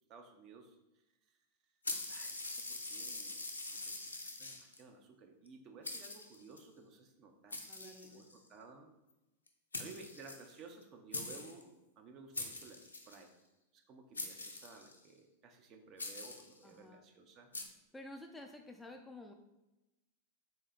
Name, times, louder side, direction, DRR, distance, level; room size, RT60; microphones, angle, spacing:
voice 1, 0.1-0.8 2.1-8.9 9.8-13.3 13.7-17.5, right 4 dB, 35° right, 3 dB, 0.6 m, -56 dB
sound 1, 1.8-4.8 5.5-5.6 5.8-6.6 7.5-8.5 9.5-9.6 9.7-10.8 11.1-11.6 12.3-13.2 14.2-15.1 16.0-16.6 17.5-17.6, left 2 dB, 75° left, 0.5 m, -43 dB
voice 2, 7.7-8.3 16.6-17.0 17.9-19.3, left 1 dB, 5° left, 4 dB, 0.3 m, -51 dB
3.6 x 2.7 x 4.2 m, 0.99 s
figure-of-eight pair, 90°, 0 cm